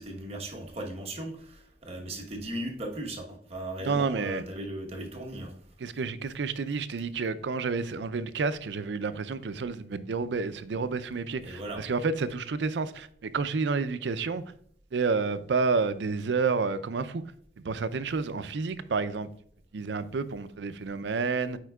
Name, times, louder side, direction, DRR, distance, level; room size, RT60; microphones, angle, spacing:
voice 1, 0.0-5.5 11.4-11.9, right 1 dB, 35° right, 1.2 m, -37 dB
voice 2, 3.8-4.4 5.8-14.4 14.9-17.2 17.6-19.3 19.7-21.6, right 4 dB, 75° right, 0.5 m, -30 dB
9.2 x 4.4 x 2.3 m
head